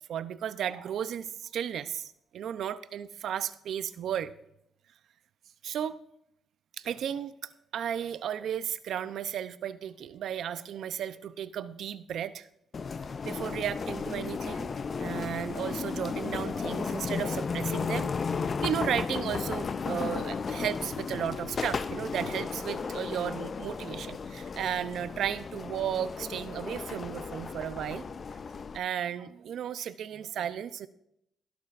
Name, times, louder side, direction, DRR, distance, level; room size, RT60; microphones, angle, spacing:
voice 1, 0.1-4.3 5.6-6.0 6.8-12.5 13.2-28.1 28.7-30.9, right 9 dB, 70° right, 13 dB, 0.6 m, -34 dB
sound 1, 12.7-28.8, left 5 dB, 40° left, 0.5 m, -34 dB
17.5 x 11.5 x 2.6 m, 0.76 s
cardioid pair, 90°, 0 cm